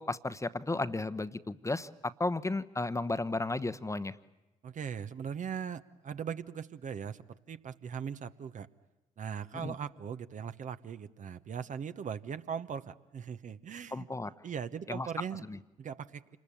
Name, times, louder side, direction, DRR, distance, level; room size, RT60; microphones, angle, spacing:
voice 1, 0.0-4.1 9.6-9.7 13.9-14.3 14.9-15.1 15.5-15.6, left 2 dB, 20° left, 14 dB, 1.0 m, -34 dB
voice 2, 4.6-8.7 9.2-14.1 14.4-15.4 15.8-16.4, right 7 dB, 50° right, 11 dB, 1.0 m, -39 dB
27.0 x 21.0 x 8.7 m, 1.0 s
hypercardioid pair, 45°, 17 cm